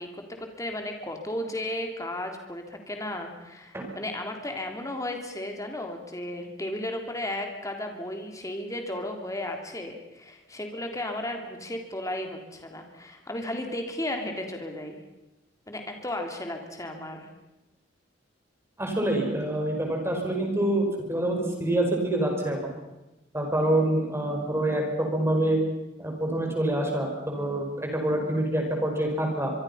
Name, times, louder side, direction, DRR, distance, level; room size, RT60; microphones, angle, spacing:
voice 1, 0.0-15.0 15.7-17.3, left 1 dB, 15° left, 3 dB, 3.2 m, -34 dB
voice 2, 18.8-22.6 23.3-24.8 25.1-25.6 26.0-29.5, right 1 dB, 15° right, 2 dB, 5.1 m, -26 dB
24.5 x 24.0 x 5.7 m, 1.0 s
head